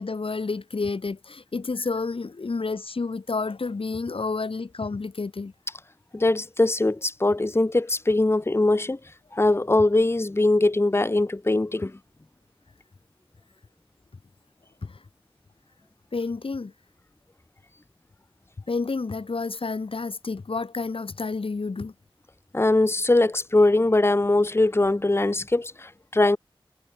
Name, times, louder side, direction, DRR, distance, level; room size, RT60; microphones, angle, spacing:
voice 1, 0.0-5.5 14.8-15.0 16.1-16.7 18.7-21.9, left 4 dB, 70° left, 4.6 m, -30 dB
voice 2, 6.1-9.0 9.3-11.9 22.5-26.4, left 2 dB, 25° left, 1.0 m, -21 dB
wide cardioid pair, 55°, 10 cm